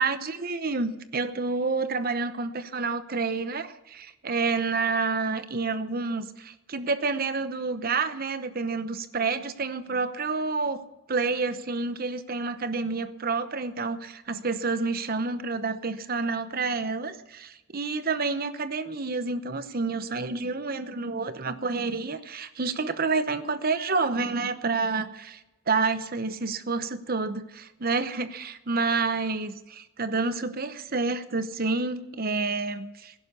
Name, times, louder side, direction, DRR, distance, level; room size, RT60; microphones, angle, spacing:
voice 1, 0.0-10.8 11.1-25.4 25.7-33.1, right 4 dB, 50° right, 11 dB, 0.9 m, -29 dB
15.5 x 11.5 x 6.9 m, 0.98 s
head